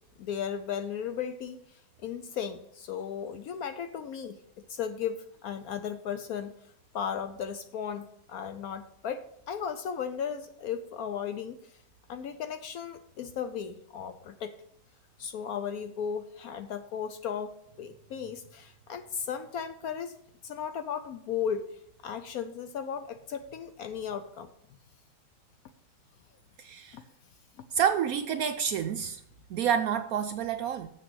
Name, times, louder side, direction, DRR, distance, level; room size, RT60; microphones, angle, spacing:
voice 1, 0.2-4.4 4.7-6.5 6.9-11.8 12.1-14.5 15.2-20.2 20.4-24.5 26.9-27.0, left 7 dB, 70° left, 10 dB, 0.9 m, -36 dB
voice 2, 26.6-27.0 27.7-29.2 29.5-30.9, right 8 dB, 70° right, 7 dB, 0.8 m, -28 dB
7.5 x 6.7 x 6.1 m, 0.76 s
omnidirectional pair, 1.9 m